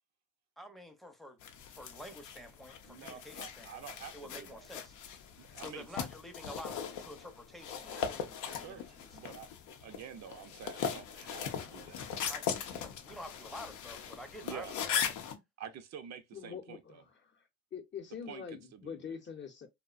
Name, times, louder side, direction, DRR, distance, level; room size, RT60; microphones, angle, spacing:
voice 1, 0.6-1.4 1.7-3.7 4.1-4.9 5.6-9.2 12.3-15.3, equal, ahead, 0.5 m, -49 dB
sound 1, 1.4-15.3, left 7 dB, 85° left, 0.5 m, -39 dB
voice 2, 2.9-4.7 5.4-5.9 8.5-9.5 9.8-12.3 14.4-14.7 15.6-17.0 18.3-19.2, right 8 dB, 65° right, 0.5 m, -48 dB
voice 3, 16.3-17.4 17.7-19.7, left 7 dB, 40° left, 0.6 m, -44 dB
2.6 x 2.1 x 2.4 m
cardioid pair, 90°, 30 cm